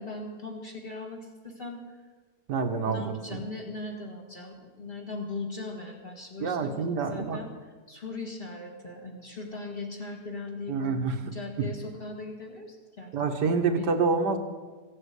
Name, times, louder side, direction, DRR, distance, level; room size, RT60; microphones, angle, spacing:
voice 1, 0.0-2.0 2.8-11.1 11.3-13.1 13.4-13.9, left 3 dB, 35° left, 0 dB, 2.1 m, -39 dB
voice 2, 2.5-3.4 6.4-7.4 10.7-11.2 13.1-14.4, right 4 dB, 75° right, 6 dB, 1.7 m, -27 dB
15.5 x 8.2 x 8.1 m, 1.4 s
omnidirectional pair, 1.8 m